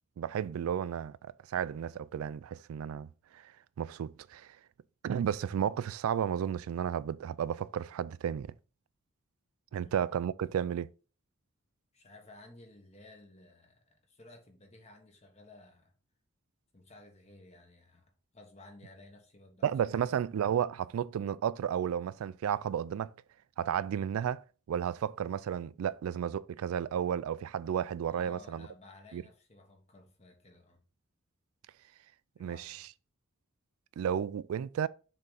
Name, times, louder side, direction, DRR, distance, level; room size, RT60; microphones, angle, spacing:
voice 1, 0.2-1.2 1.5-3.5 3.8-4.6 5.0-8.5 9.7-10.9 19.6-23.1 23.6-28.7 29.1-29.2 32.4-32.8 34.0-34.9, right 8 dB, 90° right, 0.3 m, -33 dB
voice 2, 11.9-15.9 16.7-20.0 28.1-30.8 32.4-32.8, left 2 dB, 30° left, 1.3 m, -55 dB
6.6 x 3.6 x 4.0 m
head